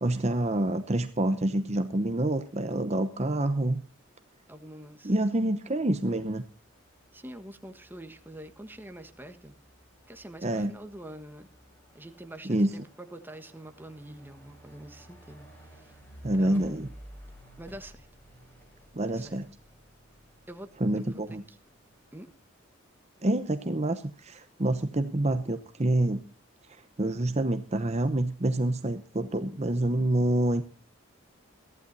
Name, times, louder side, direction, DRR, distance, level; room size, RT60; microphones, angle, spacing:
voice 1, 0.0-3.8 5.0-6.4 10.4-10.7 12.4-12.7 16.2-16.9 18.9-19.5 20.8-21.4 23.2-26.2 27.0-30.6, right 1 dB, 30° right, 9 dB, 0.8 m, -27 dB
sound 1, 4.5-22.4, equal, 10° left, 7.6 m, -55 dB
voice 2, 4.5-5.1 7.1-9.5 10.1-11.5 11.9-16.0 16.4-16.9 17.6-18.1 19.1-19.4 20.5-20.7 21.0-21.4 22.1-22.3, right 1 dB, 10° right, 7 dB, 1.3 m, -45 dB
22.5 x 15.0 x 2.7 m, 0.35 s
head